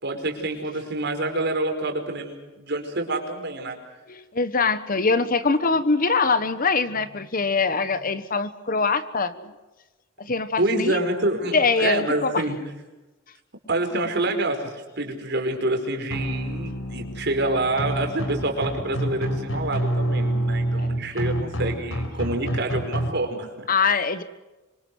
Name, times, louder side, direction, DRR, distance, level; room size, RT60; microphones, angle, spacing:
voice 1, 0.0-3.7 10.6-12.6 13.7-23.7, right 2 dB, 55° right, 4 dB, 4.9 m, -27 dB
voice 2, 4.1-9.6 10.2-11.0 11.5-12.4 20.8-20.9 23.7-24.2, left 4 dB, 45° left, 13 dB, 1.2 m, -23 dB
sound 1, 16.1-23.1, right 1 dB, 80° left, 4.7 m, -27 dB
25.5 x 25.0 x 6.4 m, 1.1 s
head